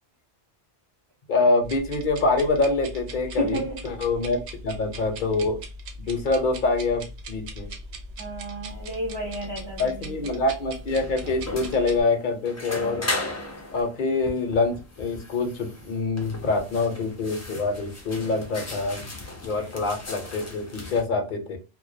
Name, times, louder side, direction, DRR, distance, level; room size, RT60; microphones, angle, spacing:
voice 1, 1.3-4.4 4.6-5.6 6.1-7.7 9.8-13.0 13.7-19.0 19.4-21.6, left 3 dB, 55° left, 0.7 m, -25 dB
sound 1, 1.6-12.0, right 1 dB, 85° right, 0.9 m, -40 dB
voice 2, 3.4-3.9 6.0-6.2 8.2-10.3 19.5-19.7, equal, 30° right, 0.6 m, -32 dB
sound 2, 8.7-21.0, left 2 dB, 25° left, 0.3 m, -37 dB
2.2 x 2.2 x 2.5 m
omnidirectional pair, 1.1 m